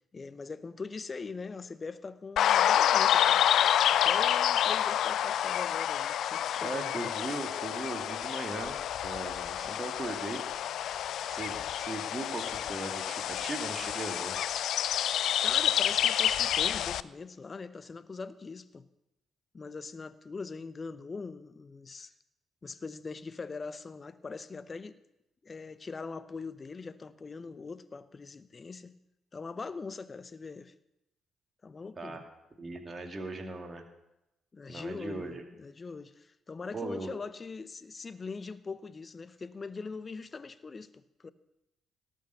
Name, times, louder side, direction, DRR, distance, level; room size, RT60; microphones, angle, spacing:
voice 1, 0.1-3.4 4.0-7.1 15.4-18.8 19.5-22.1 22.6-25.0 25.4-29.0 29.3-30.7 31.6-32.2 34.5-41.3, left 4 dB, 35° left, 0.8 m, -42 dB
sound 1, 2.4-17.0, left 10 dB, 60° left, 0.3 m, -28 dB
voice 2, 6.6-8.8 9.0-10.4 11.3-14.3 32.0-32.2 32.6-33.8 34.7-35.4 36.7-37.1, right 2 dB, 30° right, 2.3 m, -38 dB
18.0 x 6.4 x 6.9 m
figure-of-eight pair, 40°, 0 cm